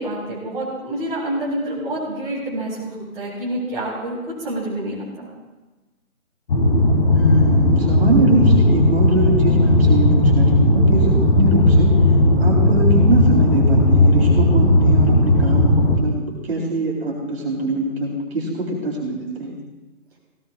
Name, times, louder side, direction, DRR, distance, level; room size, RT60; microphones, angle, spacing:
voice 1, 0.0-5.3, right 1 dB, 5° right, -10 dB, 3.8 m, -27 dB
sound 1, 6.5-16.0, left 1 dB, 35° left, 2.9 m, -15 dB
voice 2, 7.1-11.9 12.4-19.6, right 1 dB, 45° right, -2 dB, 3.8 m, -23 dB
17.5 x 17.0 x 2.5 m, 1.2 s
figure-of-eight pair, 150°, 43 cm